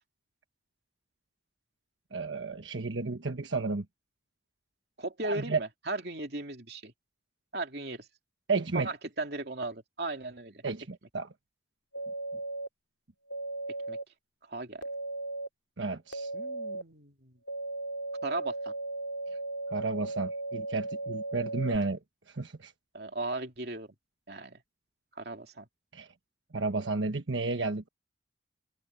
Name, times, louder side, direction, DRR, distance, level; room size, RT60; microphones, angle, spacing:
voice 1, 2.1-3.8 5.2-5.6 8.5-8.9 10.6-11.3 15.8-16.3 19.7-22.0 22.3-22.7 25.9-26.1 26.5-27.9, right 3 dB, 90° right, 1.3 m, -32 dB
voice 2, 5.0-6.9 7.5-8.1 8.7-10.6 13.9-14.0 14.5-14.8 16.3-17.3 18.2-18.7 22.9-23.9 24.3-24.6 25.2-25.7, right 2 dB, 60° right, 2.9 m, -37 dB
sound 1, 11.9-12.7 13.3-14.0 14.8-15.5 16.1-16.8 17.5-21.8, right 2 dB, 85° left, 3.1 m, -36 dB
head